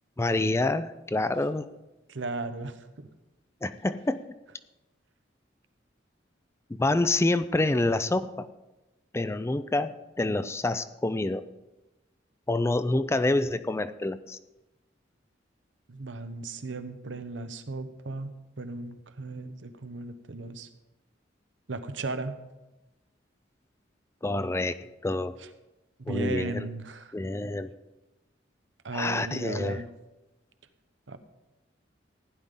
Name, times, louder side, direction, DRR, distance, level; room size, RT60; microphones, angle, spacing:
voice 1, 0.2-1.7 3.6-4.2 6.7-8.5 9.1-11.5 12.5-14.4 24.2-25.3 26.1-26.7 27.1-27.7 28.9-29.8, left 2 dB, 15° left, 13 dB, 0.4 m, -27 dB
voice 2, 2.1-3.1 15.9-20.7 21.7-22.4 26.0-27.1 28.8-29.9 31.1-31.2, right 3 dB, 75° right, 10 dB, 0.9 m, -36 dB
15.5 x 10.5 x 3.8 m, 1.0 s
head